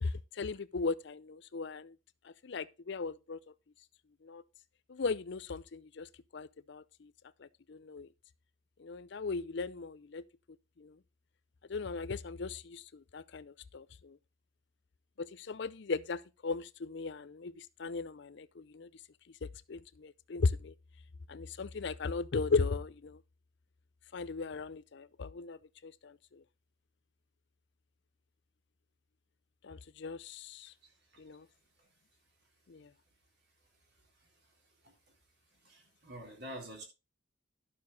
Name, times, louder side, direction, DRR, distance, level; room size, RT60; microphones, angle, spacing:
voice 1, 0.0-1.9 2.4-3.4 4.2-4.4 4.9-6.1 6.3-7.1 7.4-8.1 8.8-10.2 10.8-10.9 11.7-14.2 15.2-18.9 19.4-20.7 21.3-23.2 24.1-26.4 29.6-30.7 31.2-31.5 32.7-32.9, left 4 dB, 60° left, 0.5 m, -37 dB
voice 2, 35.6-36.8, right 1 dB, 55° right, 3.7 m, -46 dB
11.5 x 6.8 x 4.0 m
head